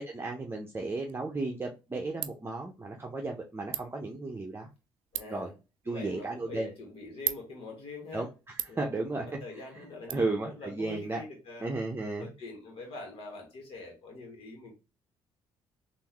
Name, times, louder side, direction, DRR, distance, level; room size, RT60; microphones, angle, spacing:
voice 1, 0.0-4.7 5.3-5.5 5.9-6.7 8.1-8.3 8.7-9.2 10.1-11.2 11.6-12.3, right 3 dB, 20° right, 1 dB, 0.7 m, -34 dB
Ratchet pawl, 1.0-10.1, right 14 dB, 85° right, 0.4 m, -43 dB
voice 2, 5.1-5.5 5.9-8.3 8.7-11.7 12.2-14.8, left 2 dB, 65° left, 1 dB, 1.5 m, -44 dB
3.7 x 2.6 x 3.0 m, 0.28 s
cardioid pair, 75°, 10 cm